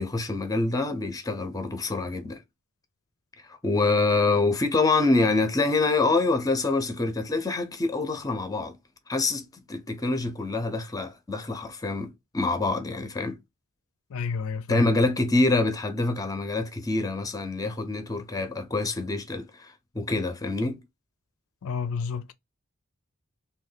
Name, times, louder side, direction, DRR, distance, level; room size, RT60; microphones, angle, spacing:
voice 1, 0.0-2.4 3.6-8.8 9.1-13.4 14.7-20.8, left 3 dB, 15° left, 0.5 m, -26 dB
voice 2, 14.1-14.9 21.6-22.3, left 5 dB, 65° left, 0.4 m, -30 dB
3.1 x 2.3 x 3.8 m
head